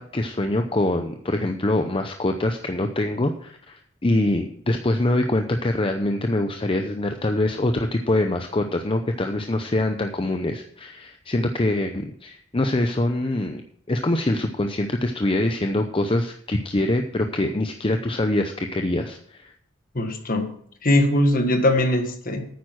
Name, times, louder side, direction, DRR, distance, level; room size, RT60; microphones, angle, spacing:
voice 1, 0.0-13.6 13.9-19.5, left 1 dB, 25° left, 5 dB, 0.7 m, -24 dB
voice 2, 19.9-20.5 20.8-22.5, left 1 dB, 45° left, 6 dB, 1.6 m, -21 dB
9.4 x 8.8 x 6.2 m, 0.62 s
head